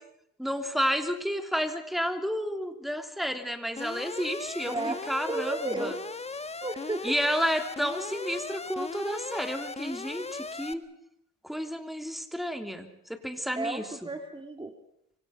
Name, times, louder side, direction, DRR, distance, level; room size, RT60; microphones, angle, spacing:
voice 1, 0.4-5.9 7.0-10.8 11.4-14.1, equal, ahead, 6 dB, 3.2 m, -31 dB
Alarm, 3.8-10.7, left 4 dB, 20° left, 1.3 m, -38 dB
voice 2, 4.7-5.0 5.3-6.0 6.6-7.1 13.5-14.7, right 2 dB, 15° right, 5 dB, 2.0 m, -33 dB
26.0 x 25.0 x 5.9 m, 0.75 s
cardioid pair, 90°, 30 cm